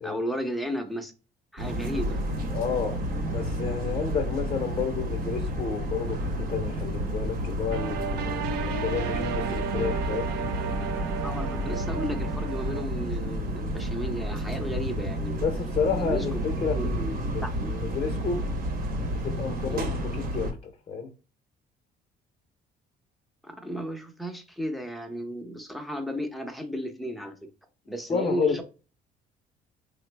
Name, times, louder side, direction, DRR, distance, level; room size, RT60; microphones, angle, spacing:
voice 1, 0.0-1.1 1.5-2.2 11.2-15.4 15.8-16.4 16.7-16.9 17.4-17.7 19.6-19.9 23.4-27.5 27.9-28.6, equal, ahead, 0.6 m, -34 dB
sound 1, 1.6-20.5, equal, 60° right, 0.9 m, -31 dB
voice 2, 2.5-10.3 15.4-18.5 19.1-21.1 28.1-28.6, left 5 dB, 35° left, 0.7 m, -31 dB
sound 2, 7.7-12.8, right 7 dB, 80° right, 0.5 m, -33 dB
3.7 x 2.0 x 3.2 m
cardioid pair, 110°, 17 cm